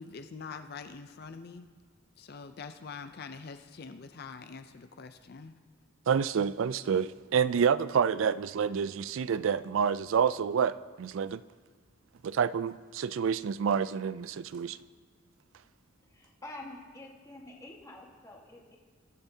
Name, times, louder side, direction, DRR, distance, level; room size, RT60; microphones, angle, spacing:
voice 1, 0.0-1.7 2.2-5.5, left 5 dB, 50° left, 0.5 m, -44 dB
voice 2, 6.1-11.4 12.2-14.8, right 7 dB, 70° right, 0.4 m, -28 dB
voice 3, 16.0-18.8, left 2 dB, 15° left, 1.5 m, -47 dB
21.5 x 10.5 x 2.8 m
head